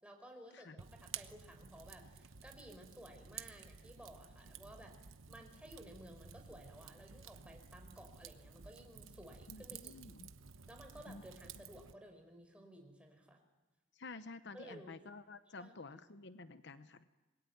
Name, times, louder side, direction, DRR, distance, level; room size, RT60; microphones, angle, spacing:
voice 1, 0.0-5.0 5.3-9.9 10.7-13.4 14.5-15.0 15.6-16.0, right 1 dB, 5° right, 3 dB, 4.8 m, -56 dB
Fire, 0.8-11.9, right 7 dB, 85° right, 1.1 m, -53 dB
voice 2, 9.5-10.3 11.1-11.2 14.0-17.0, left 3 dB, 60° left, 11 dB, 0.9 m, -51 dB
26.5 x 21.5 x 9.4 m, 1.1 s
head